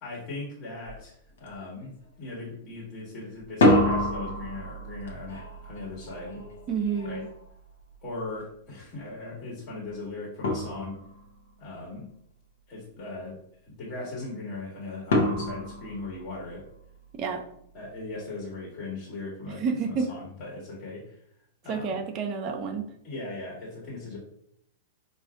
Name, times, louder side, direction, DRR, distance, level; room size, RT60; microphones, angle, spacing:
voice 1, 0.0-6.4 7.0-7.2 8.0-11.0 11.6-12.1 12.7-16.7 17.7-21.2 21.6-22.0 23.0-24.2, left 2 dB, 40° left, -5 dB, 1.5 m, -39 dB
sound 1, 0.9-1.0 1.4-1.9 3.4-8.3 9.9-10.0 10.4-11.4 15.1-16.8, left 1 dB, 70° left, 0.9 m, -28 dB
voice 2, 6.7-7.3 17.2-17.4 19.6-20.1 21.7-22.9, right 5 dB, 40° right, 4 dB, 0.5 m, -29 dB
4.8 x 2.5 x 2.4 m, 0.71 s
hypercardioid pair, 105°, 0 cm